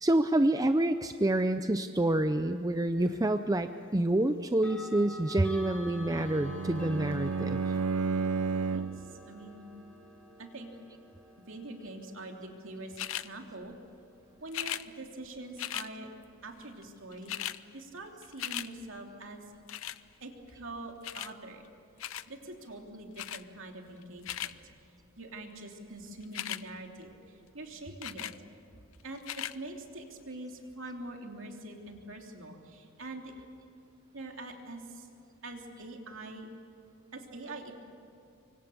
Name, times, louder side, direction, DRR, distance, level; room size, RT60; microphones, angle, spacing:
voice 1, 0.0-7.6, right 1 dB, 15° right, 9 dB, 0.5 m, -27 dB
sound 1, 3.0-3.2 4.5-15.4, left 1 dB, 5° left, 3.4 m, -49 dB
Bowed string instrument, 5.9-9.1, right 5 dB, 90° right, 0.6 m, -32 dB
voice 2, 8.7-9.7 10.4-10.7 11.5-13.7 14.4-16.1 16.4-17.4 17.7-19.4 20.2-21.6 22.3-24.6 25.2-28.3 29.0-33.3 34.1-35.1 35.4-36.5 37.1-37.7, right 2 dB, 60° right, 2 dB, 3.0 m, -44 dB
sound 2, 12.9-13.3 14.5-14.8 15.6-15.9 16.8-16.9 17.1-17.6 18.0-18.7 19.7-20.0 21.0-21.3 22.0-22.3 23.2-23.4 24.0-24.5 26.2-26.6 28.0-28.4 29.2-29.5 30.2-30.3, left 12 dB, 65° left, 0.6 m, -37 dB
25.5 x 24.5 x 7.1 m, 2.6 s
head